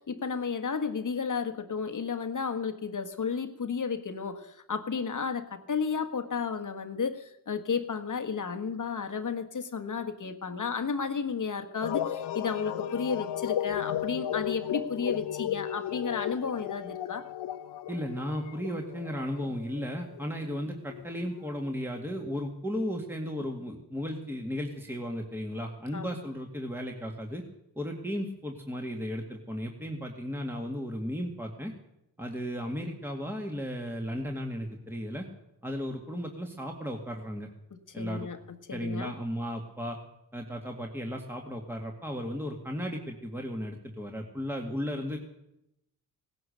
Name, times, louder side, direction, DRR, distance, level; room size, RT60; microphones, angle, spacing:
voice 1, 0.0-17.3 25.9-26.2 37.7-39.1, left 5 dB, 45° left, 8 dB, 1.6 m, -33 dB
sound 1, 11.8-21.8, left 11 dB, 75° left, 1.0 m, -35 dB
voice 2, 17.9-27.4 27.7-31.7 32.2-35.3 35.6-37.5 37.9-38.3 38.7-40.0 40.3-45.2, equal, 5° right, 1 dB, 2.2 m, -35 dB
17.5 x 11.0 x 6.8 m, 0.85 s
supercardioid pair, 45°, 42 cm